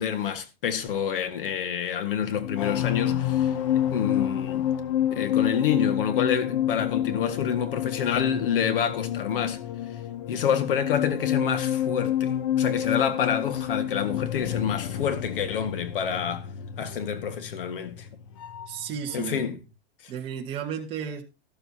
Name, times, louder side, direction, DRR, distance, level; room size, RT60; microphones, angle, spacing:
voice 1, 0.0-4.7 5.1-9.6 10.3-16.5 16.8-18.1 19.1-19.6 20.0-20.1, left 8 dB, 65° left, 1.8 m, -28 dB
sound 1, 2.2-18.9 19.1-19.4, left 10 dB, 35° left, 0.6 m, -29 dB
voice 2, 18.7-19.4 20.1-21.2, right 8 dB, 20° right, 1.4 m, -33 dB
12.5 x 12.5 x 2.8 m
supercardioid pair, 175°, 30 cm